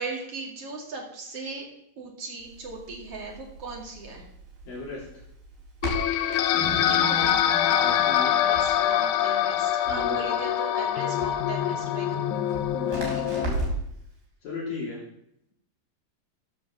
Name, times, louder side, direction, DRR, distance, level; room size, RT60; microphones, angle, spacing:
voice 1, 0.0-1.7 2.0-4.2 6.8-12.4 13.2-13.3, right 3 dB, 45° right, -2 dB, 3.1 m, -38 dB
Crackle, 2.4-13.9, right 2 dB, 75° right, 5.9 m, -38 dB
voice 2, 4.7-5.1 7.8-8.3 9.9-10.3 12.7-13.8 14.4-15.0, left 3 dB, 65° left, -7 dB, 4.5 m, -36 dB
sound 1, 5.8-13.5, left 10 dB, 80° left, 1.7 m, -24 dB
sound 2, 6.5-9.6, left 3 dB, 45° left, 1.7 m, -38 dB
14.0 x 5.3 x 6.9 m, 0.75 s
omnidirectional pair, 4.2 m